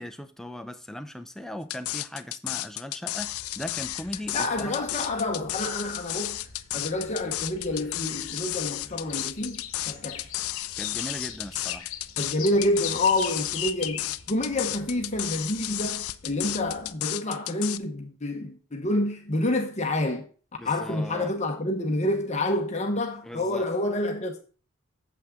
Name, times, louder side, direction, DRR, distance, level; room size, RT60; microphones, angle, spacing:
voice 1, 0.0-4.8 10.8-11.9 20.6-21.3 23.2-23.7, left 1 dB, ahead, 0.5 m, -38 dB
sound 1, 1.7-17.8, left 15 dB, 85° left, 0.5 m, -33 dB
sound 2, 3.2-16.9, left 8 dB, 70° left, 1.0 m, -42 dB
voice 2, 4.3-6.4 6.7-10.3 12.2-20.3 20.6-24.4, left 1 dB, 30° left, 0.9 m, -28 dB
8.5 x 7.1 x 3.7 m
head